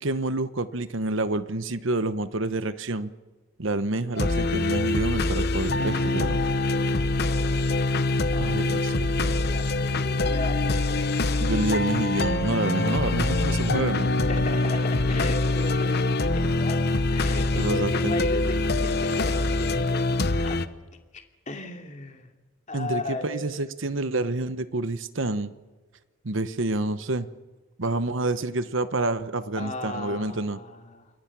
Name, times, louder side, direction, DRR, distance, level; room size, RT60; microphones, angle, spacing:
voice 1, 0.0-3.1 3.6-6.4 8.4-9.3 11.4-14.2 17.5-18.1 22.7-25.5 26.2-27.3 27.8-30.6, right 2 dB, 65° right, 12 dB, 1.0 m, -28 dB
sound 1, 4.2-20.7, left 2 dB, 50° left, 0.9 m, -24 dB
voice 2, 8.3-9.0 9.4-11.0 14.3-16.8 17.1-20.7 21.1-22.3 22.7-23.5 29.6-31.1, left 2 dB, 35° left, 3 dB, 2.8 m, -36 dB
29.0 x 22.5 x 6.1 m, 1.3 s
head